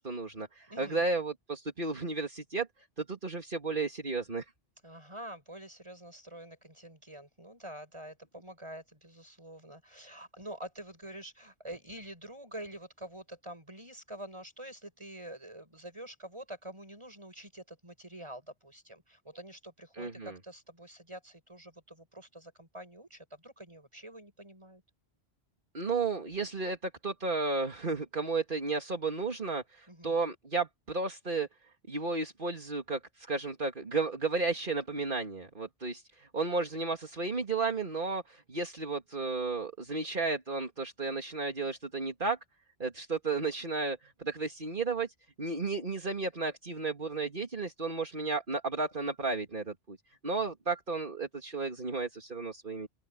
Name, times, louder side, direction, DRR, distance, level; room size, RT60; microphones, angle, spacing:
voice 1, 0.0-2.7 3.0-4.4 20.0-20.4 25.7-31.5 31.9-42.4 42.8-45.1 45.4-50.0 50.2-52.9, right 3 dB, 55° right, 2.6 m, -33 dB
voice 2, 0.7-1.0 4.8-24.8 29.9-30.2, right 1 dB, 30° right, 7.7 m, -47 dB
open air
omnidirectional pair, 1.1 m